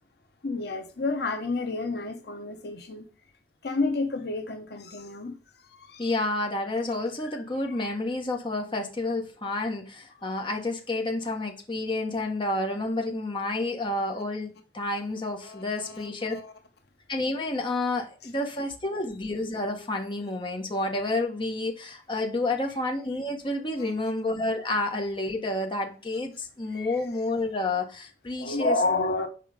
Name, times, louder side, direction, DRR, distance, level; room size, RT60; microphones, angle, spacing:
voice 1, 0.4-3.0 3.6-5.4 5.7-6.1 7.2-7.4 7.8-7.9 13.8-13.9 15.4-16.5 26.7-27.0 28.4-29.3, left 3 dB, 65° left, 1.0 m, -30 dB
voice 2, 6.0-16.4 17.1-28.8, left 2 dB, 30° left, 1.3 m, -30 dB
6.9 x 5.0 x 5.2 m
head